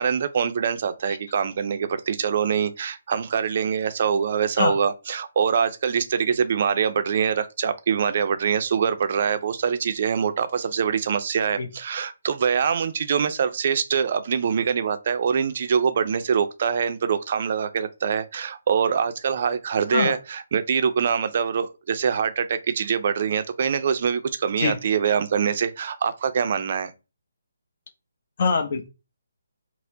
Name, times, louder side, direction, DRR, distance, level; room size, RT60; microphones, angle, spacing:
voice 1, 0.0-26.9, right 7 dB, 50° right, 0.4 m, -24 dB
voice 2, 28.4-28.9, left 4 dB, 50° left, 0.7 m, -23 dB
4.2 x 2.0 x 2.6 m
figure-of-eight pair, 150°, 0 cm